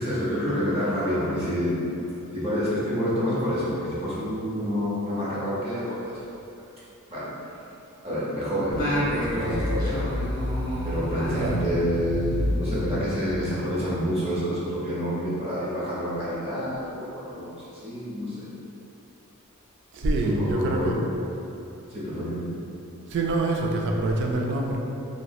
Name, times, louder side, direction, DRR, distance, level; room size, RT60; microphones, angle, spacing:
voice 1, 0.0-2.0 2.3-6.2 7.1-7.3 8.0-10.1 10.8-18.5 20.0-21.0 21.9-22.5, equal, 25° right, -9 dB, 0.7 m, -28 dB
Singing, 8.7-13.5, equal, 40° left, 0.7 m, -28 dB
voice 2, 19.9-21.0 23.1-24.8, right 2 dB, 55° right, 0 dB, 0.3 m, -25 dB
3.0 x 2.7 x 2.3 m, 2.8 s
head